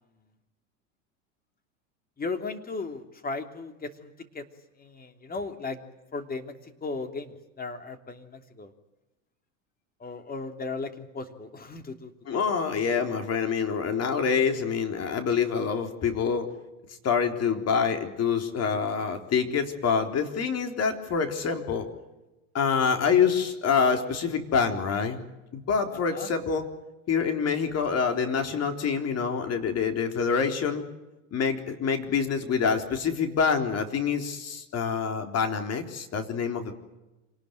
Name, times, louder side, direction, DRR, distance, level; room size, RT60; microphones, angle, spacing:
voice 1, 2.2-4.5 4.8-5.8 6.1-8.7 10.0-12.4 25.9-26.3, left 3 dB, 20° left, 7 dB, 3.1 m, -36 dB
voice 2, 12.3-16.5 17.0-21.9 22.5-25.2 25.5-26.7 27.1-30.8 31.3-36.7, left 6 dB, 40° left, 5 dB, 3.9 m, -26 dB
26.5 x 19.0 x 9.4 m, 1.0 s
hypercardioid pair, 95°, 40 cm